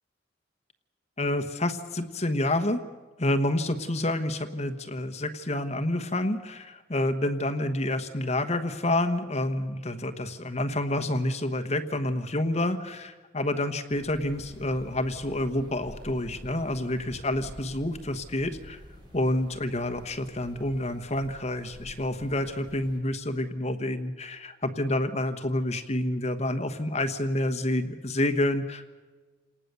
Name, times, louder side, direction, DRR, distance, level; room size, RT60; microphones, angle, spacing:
voice 1, 1.2-2.8 3.2-18.8 19.1-28.9, left 1 dB, 35° left, 8 dB, 1.2 m, -28 dB
sound 1, 13.9-23.0, equal, 25° right, 4.9 m, -48 dB
28.5 x 18.5 x 6.9 m, 1.3 s
head